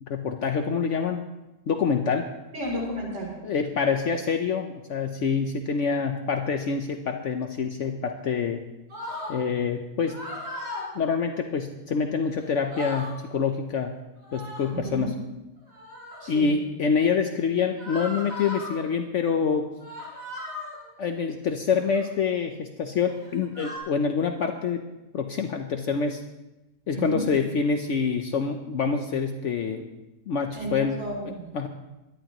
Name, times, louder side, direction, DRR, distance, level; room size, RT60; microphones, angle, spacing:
voice 1, 0.0-1.2 1.7-2.3 3.4-8.6 9.3-10.2 10.9-13.9 14.3-15.1 16.3-19.7 21.0-24.8 25.1-26.2 26.9-29.9 30.3-30.9 31.5-31.7, left 5 dB, 60° left, 5 dB, 1.1 m, -26 dB
voice 2, 2.5-3.3 14.7-15.1 16.2-16.5 26.9-27.3 30.5-31.5, right 1 dB, 55° right, -3 dB, 3.6 m, -32 dB
sound 1, 8.9-9.4 10.0-10.9 12.2-12.3 12.5-13.1 14.2-14.8 15.7-16.3 17.8-18.8 19.8-20.8 21.7-22.1 23.0-23.8, left 1 dB, 75° right, 5.4 m, -37 dB
23.0 x 11.5 x 3.0 m, 1.0 s
omnidirectional pair, 1.5 m